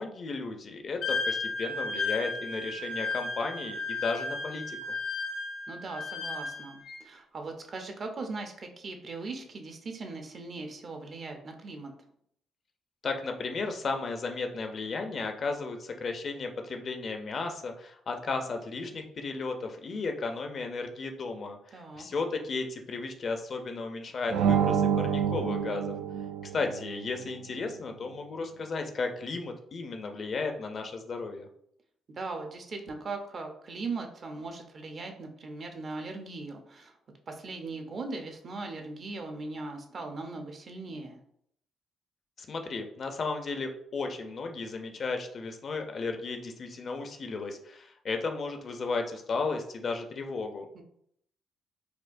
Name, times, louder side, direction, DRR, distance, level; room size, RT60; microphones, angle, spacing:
voice 1, 0.0-4.8 13.0-25.9 26.5-31.5 42.4-50.7, left 4 dB, 50° left, 5 dB, 0.5 m, -34 dB
Wind instrument woodwind instrument, 1.0-7.0, left 3 dB, 85° left, 1.2 m, -34 dB
voice 2, 5.7-11.9 21.7-22.1 32.1-37.0 37.3-41.2 50.7-50.8, right 3 dB, 45° right, 4 dB, 0.6 m, -39 dB
sound 1, 24.3-27.0, right 8 dB, 85° right, 0.3 m, -27 dB
4.3 x 2.2 x 2.5 m, 0.69 s
cardioid pair, 90°, 0 cm